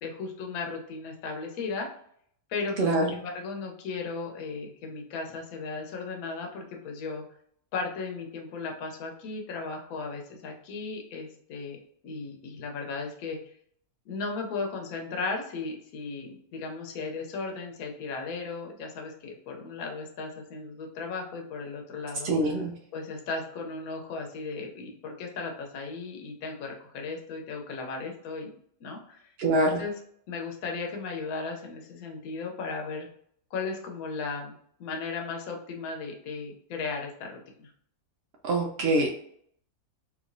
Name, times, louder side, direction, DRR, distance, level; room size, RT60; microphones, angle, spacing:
voice 1, 0.0-1.9 2.5-7.2 7.7-11.8 12.0-13.5 14.1-22.3 22.9-28.5 28.8-29.3 29.6-29.9 30.3-33.1 33.5-37.7, left 4 dB, 70° left, 2 dB, 1.1 m, -36 dB
voice 2, 2.8-3.2 22.2-22.7 29.4-29.8 38.4-39.1, right 2 dB, 90° right, 1 dB, 0.5 m, -24 dB
3.0 x 2.6 x 2.5 m, 0.65 s
omnidirectional pair, 1.6 m